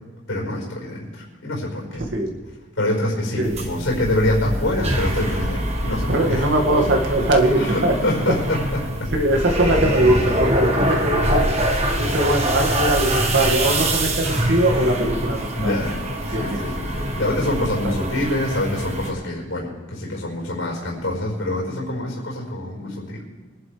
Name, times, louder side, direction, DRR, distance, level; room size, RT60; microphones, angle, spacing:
voice 1, 0.3-2.0 2.8-6.4 7.6-9.1 15.5-23.2, left 1 dB, 85° left, -2 dB, 5.1 m, -25 dB
sound 1, 3.4-19.1, right 1 dB, 35° right, 1.6 m, -24 dB
voice 2, 6.1-7.9 9.1-11.4 12.0-15.8 16.3-16.6 17.8-18.0, right 1 dB, 70° right, 1 dB, 2.2 m, -21 dB
24.5 x 11.5 x 3.5 m, 1.3 s
head